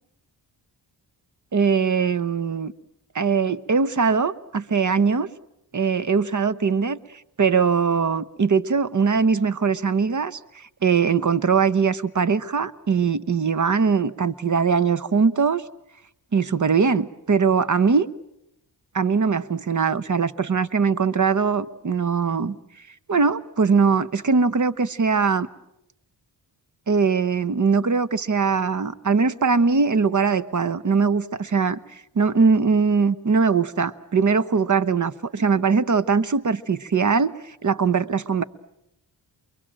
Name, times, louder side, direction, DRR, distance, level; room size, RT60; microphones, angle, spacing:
voice 1, 1.5-2.7 3.1-5.3 5.7-7.0 7.4-10.4 10.8-15.6 16.3-18.1 18.9-22.6 23.1-25.5 26.9-31.8 32.1-38.4, right 5 dB, 45° right, 16 dB, 1.0 m, -21 dB
29.0 x 22.5 x 7.6 m, 0.83 s
cardioid pair, 65°, 43 cm